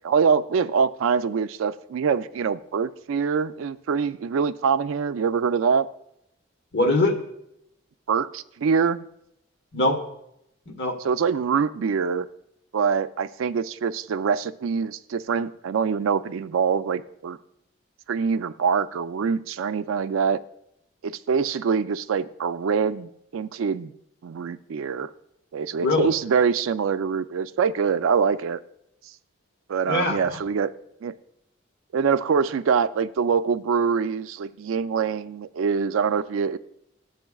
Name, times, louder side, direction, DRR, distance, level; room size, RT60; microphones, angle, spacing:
voice 1, 0.0-5.9 8.1-9.0 11.0-12.3 12.7-17.4 18.1-20.4 21.0-23.9 24.2-25.1 25.5-28.6 29.7-30.7 31.0-31.2 31.9-36.6, right 6 dB, 90° right, 0.4 m, -24 dB
voice 2, 6.7-7.2 9.7-10.0 10.7-11.0 25.8-26.1 29.9-30.4, left 2 dB, 65° left, 1.3 m, -22 dB
13.5 x 7.8 x 2.3 m
head